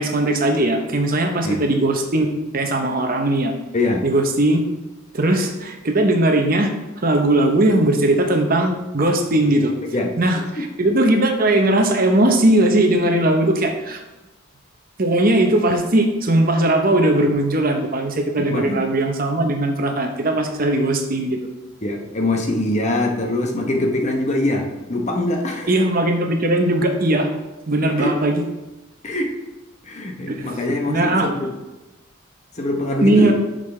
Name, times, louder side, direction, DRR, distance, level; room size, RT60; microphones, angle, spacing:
voice 1, 0.0-2.3 2.5-3.5 4.0-4.7 5.1-6.7 7.0-9.7 10.2-14.0 15.0-21.4 25.7-27.3 27.7-28.4 30.3-30.6 30.9-31.3 33.0-33.3, right 1 dB, 45° right, 4 dB, 0.9 m, -19 dB
voice 2, 3.7-4.1 9.9-10.1 18.5-18.8 21.8-25.7 28.0-28.1 29.0-29.3 29.8-31.5 32.6-33.3, left 1 dB, 35° left, 2 dB, 0.9 m, -23 dB
9.0 x 6.5 x 3.3 m, 1.0 s
head